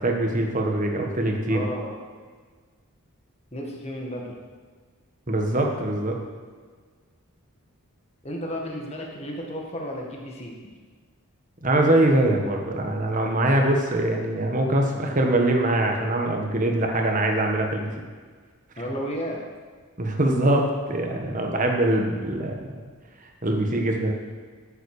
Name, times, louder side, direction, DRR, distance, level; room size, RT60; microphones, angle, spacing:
voice 1, 0.0-1.7 5.3-6.2 11.6-18.0 20.0-22.5 23.4-24.1, right 1 dB, 35° right, 2 dB, 1.4 m, -23 dB
voice 2, 1.5-2.0 3.5-4.3 8.2-10.5 18.8-19.4 21.1-21.2, equal, 30° left, -1 dB, 1.7 m, -33 dB
13.0 x 7.7 x 4.9 m, 1.5 s
head